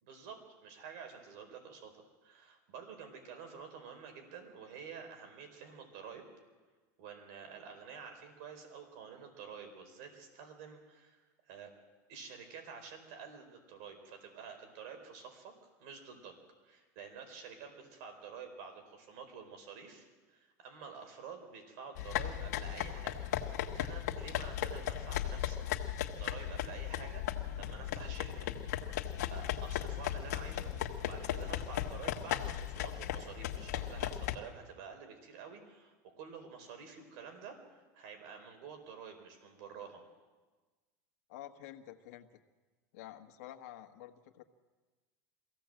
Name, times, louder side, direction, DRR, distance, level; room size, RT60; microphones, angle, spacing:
voice 1, 0.0-6.3 7.0-11.7 12.1-15.5 15.8-16.4 16.6-25.6 26.1-28.7 29.3-30.7 31.0-40.0, right 6 dB, 65° right, 5 dB, 4.3 m, -49 dB
sound 1, 22.0-34.4, left 11 dB, 90° left, 1.5 m, -37 dB
voice 2, 41.3-42.3 42.9-44.4, left 12 dB, 70° left, 4 dB, 1.5 m, -49 dB
23.5 x 16.0 x 7.7 m, 1.3 s
supercardioid pair, 140°, 9 cm